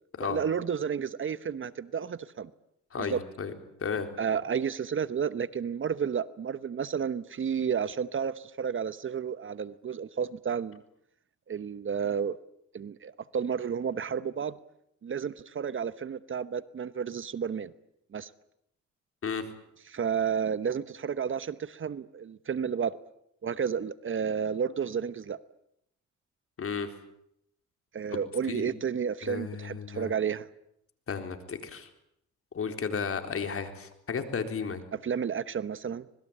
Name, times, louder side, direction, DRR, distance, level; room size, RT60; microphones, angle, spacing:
voice 1, 0.2-2.5 3.0-3.2 4.2-10.8 11.5-12.4 12.7-14.6 15.0-17.7 18.1-18.3 19.9-23.0 23.4-25.4 27.9-30.5 34.9-36.1, right 7 dB, 40° right, 16 dB, 1.0 m, -31 dB
voice 2, 2.9-3.5 3.8-4.1 19.2-19.5 26.6-26.9 28.1-28.2 28.5-28.7 29.2-30.1 31.1-31.9 32.5-34.8, left 6 dB, 50° left, 7 dB, 3.9 m, -33 dB
26.0 x 20.5 x 8.7 m, 0.76 s
cardioid pair, 90°, 30 cm